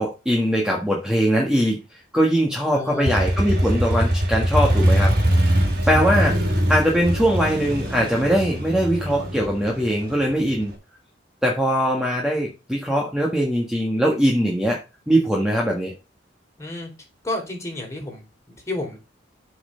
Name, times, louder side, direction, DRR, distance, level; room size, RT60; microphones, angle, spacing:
voice 1, 0.0-5.1 5.9-6.3 6.7-10.7 11.4-14.8 15.1-15.9, equal, 5° right, -2 dB, 1.5 m, -21 dB
voice 2, 2.7-3.3 5.9-6.1 16.6-16.9 17.2-19.0, left 2 dB, 15° left, 0 dB, 3.7 m, -31 dB
Motorcycle, 3.1-10.7, equal, 60° right, 3.3 m, -22 dB
8.4 x 5.4 x 5.6 m, 0.29 s
head